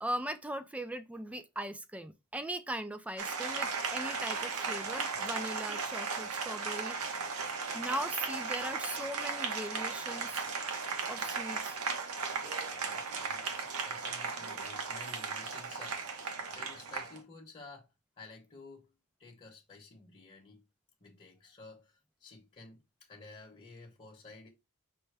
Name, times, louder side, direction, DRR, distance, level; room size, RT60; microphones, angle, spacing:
voice 1, 0.0-7.4 7.7-10.5 11.1-11.8, right 1 dB, 5° right, 0.4 m, -39 dB
Applause, 3.2-17.2, right 5 dB, 90° right, 0.9 m, -36 dB
voice 2, 12.7-13.5 13.8-18.9 19.2-20.6 21.0-24.5, left 3 dB, 30° left, 1.0 m, -52 dB
5.5 x 2.1 x 3.3 m
head